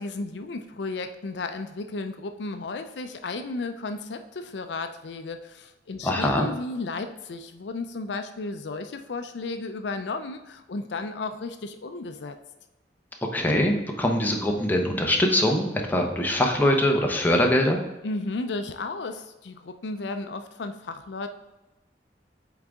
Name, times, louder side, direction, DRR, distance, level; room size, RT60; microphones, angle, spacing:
voice 1, 0.0-12.4 18.0-21.3, left 3 dB, 75° left, 8 dB, 0.5 m, -34 dB
voice 2, 6.0-6.5 13.3-17.8, left 1 dB, 10° left, 1 dB, 0.9 m, -23 dB
8.1 x 3.9 x 3.6 m, 1.0 s
head